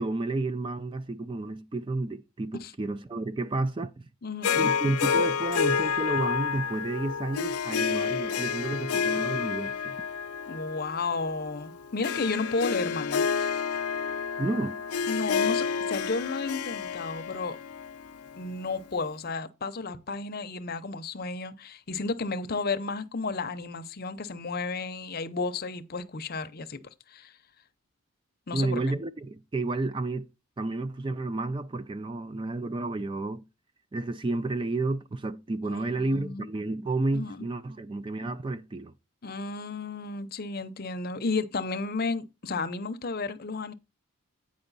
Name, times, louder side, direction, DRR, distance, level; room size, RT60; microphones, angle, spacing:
voice 1, 0.0-4.1 4.6-10.0 14.4-14.8 28.5-30.3 30.6-33.4 33.9-38.9, right 2 dB, 20° right, 0.3 m, -31 dB
voice 2, 4.2-4.7 10.5-13.6 15.1-17.6 18.4-26.8 27.1-27.4 28.5-28.9 35.6-36.5 37.1-37.5 39.2-43.7, left 3 dB, 45° left, 0.6 m, -33 dB
Harp, 4.4-18.8, left 6 dB, 85° left, 0.5 m, -29 dB
8.9 x 5.2 x 4.0 m
head